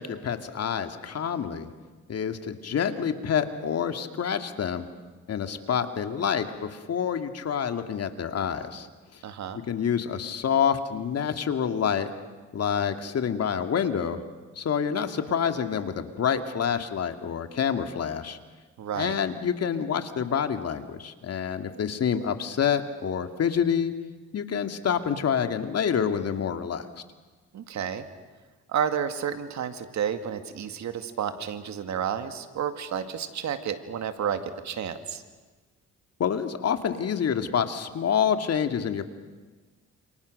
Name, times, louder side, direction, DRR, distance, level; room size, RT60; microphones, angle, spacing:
voice 1, 0.0-1.7 2.1-4.9 5.3-8.9 9.1-9.2 9.7-12.1 12.5-14.2 14.6-18.4 18.9-23.9 24.3-26.9 36.2-39.1, left 7 dB, 55° left, 7 dB, 2.3 m, -27 dB
voice 2, 9.2-9.6 18.8-19.2 27.5-28.1 28.7-35.2, right 8 dB, 65° right, 9 dB, 2.2 m, -31 dB
29.5 x 28.0 x 6.7 m, 1.3 s
cardioid pair, 90°, 30 cm